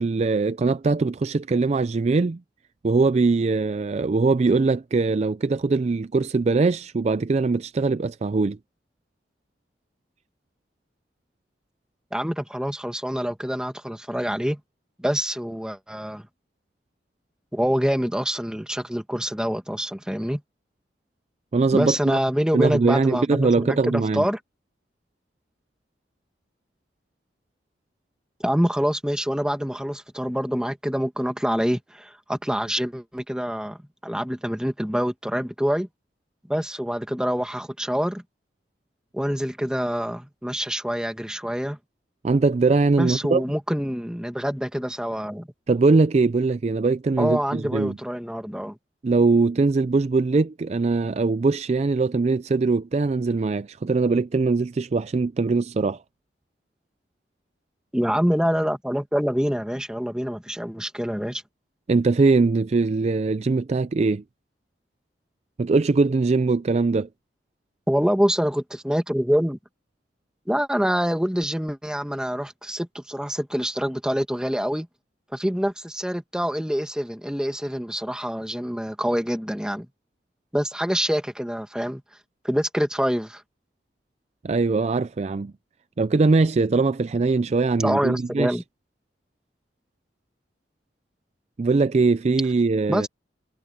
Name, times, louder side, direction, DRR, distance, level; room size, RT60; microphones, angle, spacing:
voice 1, 0.0-2.4 2.8-8.6 21.5-22.2 22.5-24.3 42.2-43.4 45.7-48.0 49.0-56.0 61.9-64.2 65.6-67.1 84.4-85.5 86.0-88.6 91.6-93.1, right 3 dB, 40° right, 0.4 m, -21 dB
voice 2, 12.1-14.6 15.0-16.3 17.5-20.4 21.7-24.4 28.4-35.9 36.5-38.2 39.1-41.8 43.0-45.5 47.2-48.8 57.9-61.4 67.9-69.6 70.5-74.9 75.3-79.9 80.5-82.0 82.4-83.4 87.8-88.6 92.9-93.1, equal, 5° right, 1.8 m, -26 dB
head